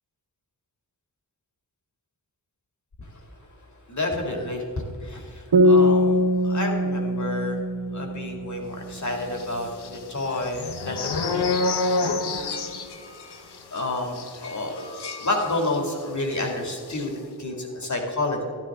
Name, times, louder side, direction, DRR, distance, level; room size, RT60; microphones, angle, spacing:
voice 1, 3.9-7.6 7.9-11.5 12.2-12.8 13.4-18.4, left 2 dB, 45° left, 1 dB, 2.4 m, -30 dB
sound 1, 5.5-9.0, equal, 90° right, 1.5 m, -21 dB
sound 2, 9.3-16.0 16.3-16.5 16.8-17.1, left 3 dB, 85° left, 1.0 m, -29 dB
13.5 x 12.0 x 3.7 m, 2.3 s
wide cardioid pair, 80°, 39 cm